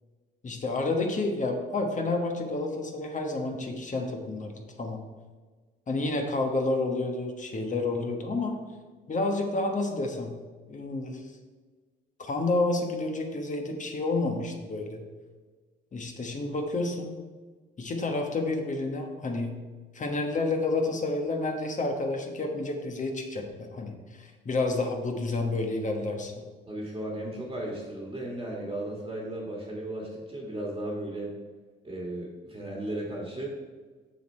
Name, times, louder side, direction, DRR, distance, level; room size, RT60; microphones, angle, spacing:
voice 1, 0.4-5.0 5.9-8.6 9.1-10.3 10.7-11.2 12.2-15.0 15.9-17.2 17.8-19.5 19.9-26.4, left 2 dB, 40° left, 3 dB, 1.2 m, -30 dB
voice 2, 26.7-31.3 31.8-33.6, right 1 dB, 20° right, -2 dB, 1.6 m, -35 dB
6.8 x 6.4 x 4.4 m, 1.4 s
cardioid pair, 90°, 20 cm